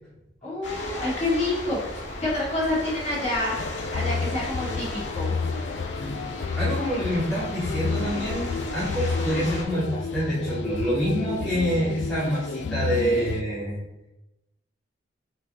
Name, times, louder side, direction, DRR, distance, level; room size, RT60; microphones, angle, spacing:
voice 1, 0.4-1.8 2.2-3.5 3.9-5.4, left 2 dB, 35° left, -7 dB, 2.3 m, -27 dB
sound 1, 0.6-9.6, left 2 dB, 85° left, 1.6 m, -35 dB
sound 2, 3.6-13.4, left 4 dB, 70° left, 0.4 m, -31 dB
voice 2, 6.6-13.8, equal, 5° left, -11 dB, 2.3 m, -26 dB
5.9 x 4.9 x 4.2 m, 0.93 s
head